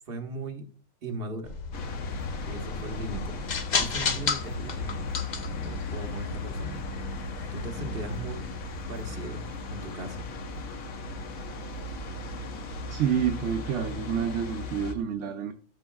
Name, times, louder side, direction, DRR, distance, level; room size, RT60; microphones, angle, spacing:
voice 1, 0.1-0.7 1.0-1.5 2.4-3.4 3.8-5.1 5.5-6.8 7.5-8.5 8.9-10.2, right 2 dB, 45° right, 1.4 m, -38 dB
sound 1, 1.4-8.8, left 4 dB, 45° left, 0.7 m, -34 dB
sound 2, 1.7-14.9, left 3 dB, 85° left, 1.4 m, -37 dB
voice 2, 12.9-15.5, right 8 dB, 65° right, 0.9 m, -28 dB
12.5 x 5.8 x 2.3 m
omnidirectional pair, 1.4 m